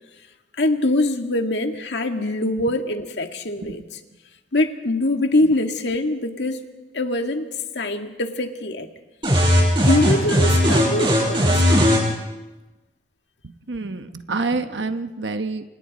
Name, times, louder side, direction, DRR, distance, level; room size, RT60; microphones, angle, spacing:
voice 1, 0.6-4.0 4.5-6.6 6.9-7.5 7.8-8.9 9.8-11.9, left 1 dB, 85° left, 5 dB, 1.9 m, -23 dB
sound 1, 9.2-12.0, equal, 25° right, 6.8 m, -17 dB
voice 2, 13.7-15.6, right 3 dB, 90° right, 8 dB, 1.0 m, -27 dB
29.0 x 27.0 x 4.2 m, 1.1 s
head